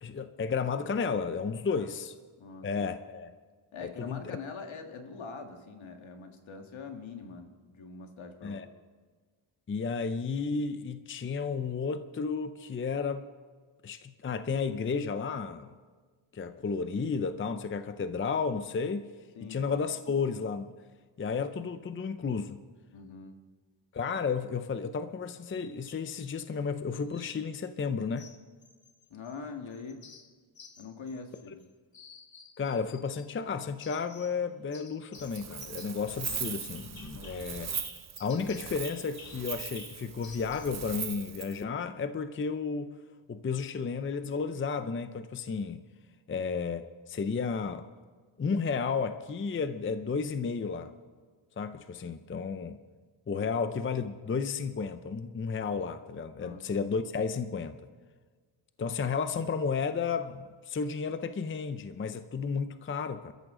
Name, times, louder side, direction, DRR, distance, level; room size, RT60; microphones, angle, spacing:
voice 1, 0.0-2.1 2.6-3.3 3.8-4.2 8.4-8.7 9.7-13.2 13.8-15.7 16.3-19.1 19.5-20.8 21.2-22.6 23.9-28.3 32.6-37.7 38.2-43.0 43.3-45.9 46.3-47.9 48.4-50.9 51.6-52.8 53.3-57.8 58.8-63.3, left 5 dB, 25° left, 10 dB, 0.5 m, -32 dB
voice 2, 2.4-2.9 3.7-8.6 19.4-19.6 22.9-23.4 29.1-30.0 30.8-31.6 37.1-37.4 53.5-53.7 56.4-56.7, left 4 dB, 70° left, 4 dB, 1.9 m, -43 dB
sound 1, 23.9-24.3 25.5-26.3 27.1-27.5 28.2-29.4 29.7-31.6 31.9-33.3 33.8-34.4 34.7-40.8, left 5 dB, 45° left, 1.4 m, -52 dB
Wind, 35.1-41.6, right 8 dB, 35° right, 0.6 m, -40 dB
27.0 x 13.5 x 3.8 m, 1.5 s
wide cardioid pair, 140°, 48 cm